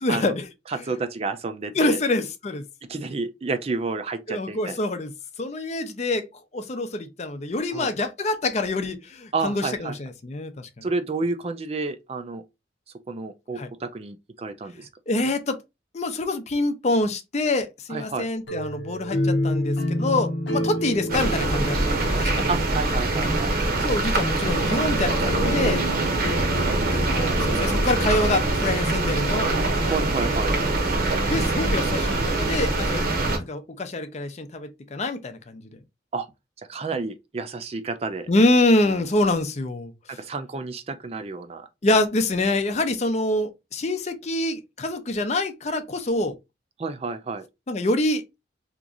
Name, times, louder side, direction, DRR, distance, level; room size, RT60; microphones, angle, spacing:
voice 1, 0.0-0.5 1.7-2.6 4.3-5.1 5.4-6.3 6.5-10.9 13.6-13.7 15.1-15.6 15.9-22.4 23.8-25.8 26.9-29.7 31.3-33.0 33.5-35.8 38.3-40.2 41.8-46.4 47.7-48.2, left 2 dB, 40° left, 0.5 m, -25 dB
voice 2, 0.7-2.0 2.9-4.8 7.7-7.9 9.3-9.9 10.8-12.4 13.1-14.9 17.9-18.3 22.5-23.6 29.8-30.5 36.1-36.3 36.7-38.3 40.1-41.7 46.8-47.5, right 4 dB, 35° right, 0.4 m, -30 dB
sound 1, 18.5-23.4, left 1 dB, 80° left, 0.7 m, -28 dB
sound 2, 21.1-33.4, right 2 dB, 55° right, 0.9 m, -23 dB
2.9 x 2.5 x 3.6 m
head